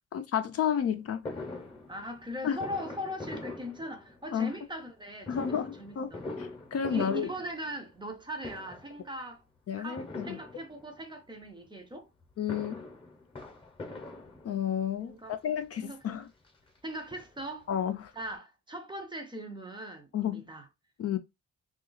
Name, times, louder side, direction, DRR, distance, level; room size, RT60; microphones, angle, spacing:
voice 1, 0.1-1.3 2.4-2.6 4.3-4.5 5.3-6.1 6.4-7.3 9.7-10.4 12.4-12.8 14.4-16.3 17.7-18.1 20.1-20.4 21.0-21.2, left 8 dB, 55° left, 0.5 m, -31 dB
Fireworks, 1.3-4.4 5.2-8.1 8.4-9.0 10.0-11.1 12.2-14.9 15.6-15.7 16.0-16.1 16.4-17.7 18.0-18.1 18.3-18.4, left 2 dB, 20° left, 0.8 m, -43 dB
voice 2, 1.9-6.2 6.9-9.4 9.7-12.1 15.0-15.4 15.8-16.1 16.8-17.7 18.1-20.7, equal, 15° right, 0.5 m, -40 dB
2.8 x 2.4 x 3.8 m
wide cardioid pair, 165°, 29 cm